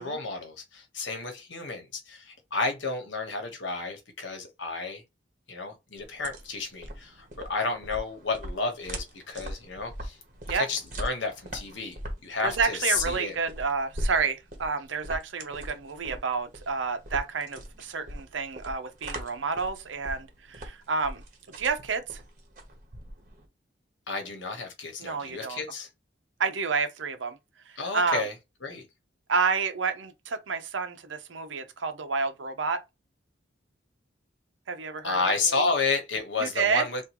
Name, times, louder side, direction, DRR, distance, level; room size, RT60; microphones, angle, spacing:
voice 1, 0.0-5.0 5.5-10.2 10.5-12.0 12.2-13.3 24.1-25.9 27.8-28.3 28.6-28.8 35.0-37.0, left 3 dB, 80° left, 1.2 m, -31 dB
sound 1, 6.0-23.5, right 1 dB, 40° right, 0.9 m, -40 dB
voice 2, 12.4-21.2 21.6-22.2 25.0-25.6 26.4-27.4 27.7-28.2 29.3-32.8 34.7-35.7 36.4-36.9, right 5 dB, 85° right, 0.7 m, -29 dB
3.6 x 2.6 x 3.0 m
head